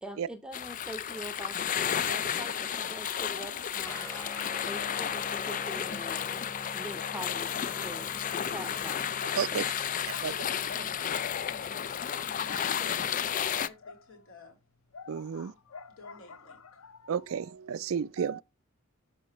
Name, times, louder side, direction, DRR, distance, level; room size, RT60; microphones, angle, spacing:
voice 1, 0.0-4.1 4.7-6.2 6.7-7.5 7.8-9.0 9.5-9.7, right 1 dB, 5° right, 0.8 m, -43 dB
sound 1, 0.5-13.7, left 9 dB, 40° left, 0.4 m, -32 dB
sound 2, 2.0-4.9 5.2-6.6 7.0-14.4 14.9-17.5, left 5 dB, 85° left, 0.8 m, -49 dB
Guitar, 3.8-13.7, left 1 dB, 15° left, 1.5 m, -48 dB
voice 2, 10.1-14.6 15.3-15.6 16.0-16.6, left 2 dB, 65° left, 3.5 m, -51 dB
voice 3, 15.1-15.5 17.1-18.4, right 7 dB, 70° right, 0.4 m, -31 dB
12.0 x 4.2 x 3.0 m
head